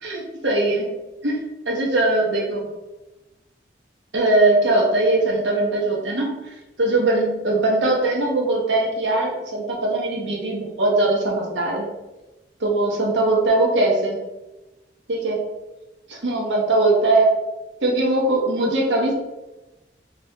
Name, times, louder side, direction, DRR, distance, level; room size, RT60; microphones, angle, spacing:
voice 1, 0.0-0.9 1.2-1.4 1.7-2.7 4.1-6.4 6.8-11.9 12.6-14.2 15.1-15.4 16.1-17.3 17.8-19.1, right 2 dB, 85° right, -1 dB, 0.8 m, -20 dB
2.8 x 2.4 x 3.2 m, 1.0 s
head